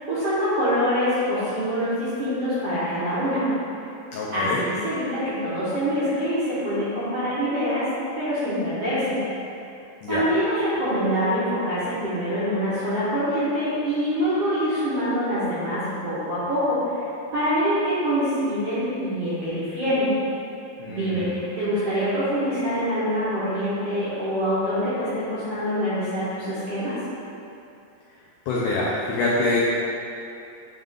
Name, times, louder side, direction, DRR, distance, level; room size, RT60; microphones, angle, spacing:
voice 1, 0.1-3.4 4.3-7.8 8.2-9.2 10.1-17.0 17.3-20.1 20.9-27.0, equal, 60° right, -12 dB, 1.7 m, -25 dB
voice 2, 4.1-4.6 10.0-10.3 20.8-21.4 28.5-29.6, left 2 dB, 85° left, -5 dB, 1.8 m, -25 dB
8.8 x 3.7 x 3.6 m, 2.7 s
omnidirectional pair, 4.5 m